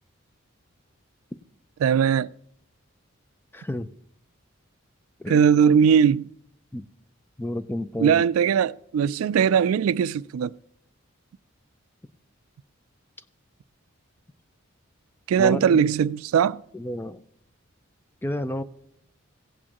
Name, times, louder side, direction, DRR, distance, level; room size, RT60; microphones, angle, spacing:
voice 1, 1.8-2.3 5.3-6.3 8.0-10.5 15.3-16.6, right 7 dB, 90° right, 0.3 m, -20 dB
voice 2, 3.5-3.9 5.2-5.4 6.7-6.8 7.4-8.2 15.4-15.9 16.7-17.2 18.2-18.6, left 1 dB, 10° left, 0.4 m, -30 dB
16.5 x 8.6 x 2.9 m
head